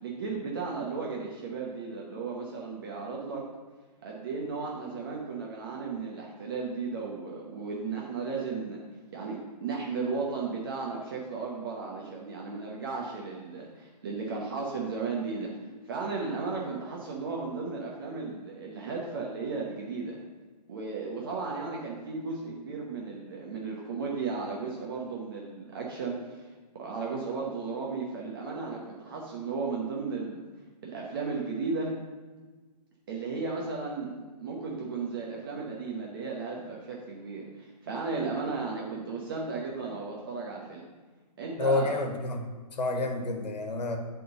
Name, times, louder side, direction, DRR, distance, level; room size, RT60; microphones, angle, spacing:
voice 1, 0.0-3.4 4.0-8.8 9.1-15.5 15.8-20.2 20.7-26.5 26.8-30.4 30.8-31.9 33.1-40.8 41.4-42.0, right 4 dB, 35° right, -3 dB, 0.9 m, -35 dB
voice 2, 41.6-42.4 42.8-44.0, left 3 dB, 90° left, 4 dB, 1.4 m, -29 dB
8.4 x 3.8 x 6.4 m, 1.3 s
hypercardioid pair, 175°, 21 cm